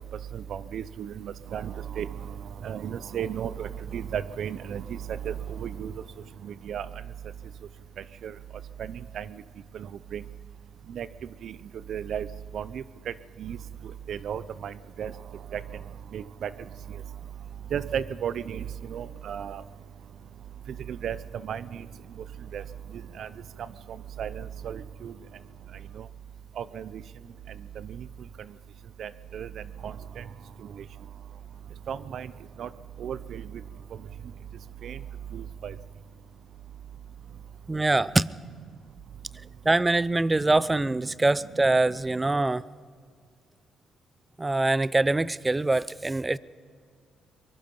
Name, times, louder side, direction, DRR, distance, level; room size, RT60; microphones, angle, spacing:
voice 1, 0.3-2.3 2.6-5.9 6.4-6.9 8.2-8.3 8.8-9.3 9.7-10.2 10.9-11.1 11.4-11.5 11.9-12.3 12.5-13.1 13.4-13.6 14.1-15.1 15.5-15.6 16.1-16.5 17.7-19.6 20.9-21.2 21.4-21.9 22.5-22.6 23.2-23.3 24.2-25.1 25.9-26.1 26.6-27.0 27.8-28.1 29.0-30.2 30.7-30.8 31.9-32.3 32.6-32.7 33.0-33.5 34.8-35.0 35.3-35.7, right 8 dB, 65° right, 17 dB, 0.6 m, -34 dB
voice 2, 37.7-38.2 39.7-42.6 44.4-46.4, right 2 dB, 20° right, 20 dB, 0.5 m, -24 dB
23.5 x 21.0 x 5.4 m, 2.1 s
cardioid pair, 90°, 0 cm